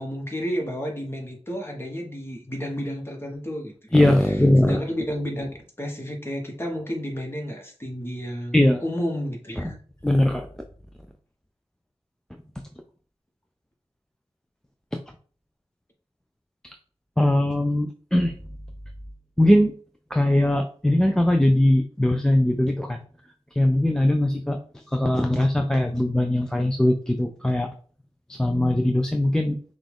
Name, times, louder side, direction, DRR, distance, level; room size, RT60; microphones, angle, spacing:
voice 1, 0.0-5.5 5.8-9.7, equal, 20° left, 0 dB, 1.4 m, -31 dB
voice 2, 3.9-4.8 8.5-8.8 10.0-10.4 17.2-18.3 19.4-19.7 20.1-23.0 23.6-24.6 24.9-27.7 28.3-29.6, left 1 dB, 5° left, 5 dB, 0.4 m, -20 dB
5.8 x 2.5 x 3.5 m, 0.44 s
wide cardioid pair, 85°, 11 cm